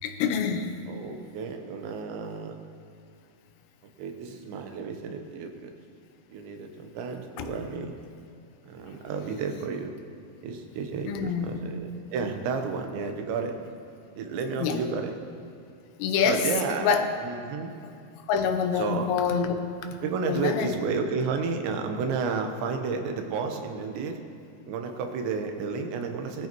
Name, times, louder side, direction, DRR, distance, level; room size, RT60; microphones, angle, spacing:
voice 1, 0.0-0.7 7.4-7.5 11.1-11.6 14.6-14.8 16.0-16.4 16.8-17.1 18.3-19.5 20.3-20.7, left 7 dB, 90° left, 6 dB, 3.2 m, -26 dB
voice 2, 0.9-2.6 4.0-5.7 6.3-8.0 8.6-10.0 10.4-13.6 14.2-15.1 16.2-16.9 17.2-17.7 18.8-19.1 20.0-24.2 24.7-26.5, right 5 dB, 85° right, 5 dB, 3.3 m, -31 dB
20.0 x 13.5 x 3.0 m, 2.5 s
omnidirectional pair, 5.0 m